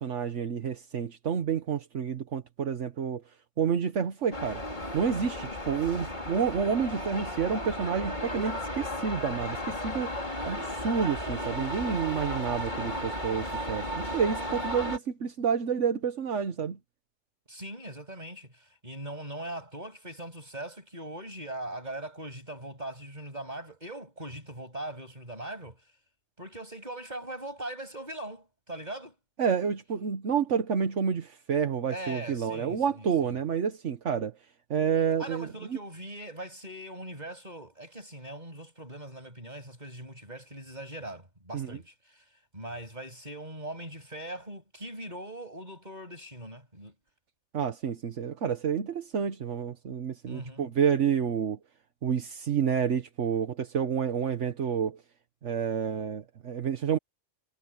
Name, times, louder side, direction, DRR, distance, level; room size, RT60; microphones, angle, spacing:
voice 1, 0.0-3.2 3.6-4.6 4.9-10.1 10.5-16.8 29.4-34.4 34.7-35.5 41.5-41.8 47.5-51.6 52.0-55.0 55.4-57.0, right 7 dB, 75° right, 1.5 m, -29 dB
sound 1, 4.3-15.0, equal, 40° left, 4.5 m, -34 dB
voice 2, 17.5-25.8 26.4-29.2 31.9-33.3 35.2-42.2 42.5-46.9 50.3-50.7, right 1 dB, 35° right, 8.1 m, -41 dB
omnidirectional pair, 1.3 m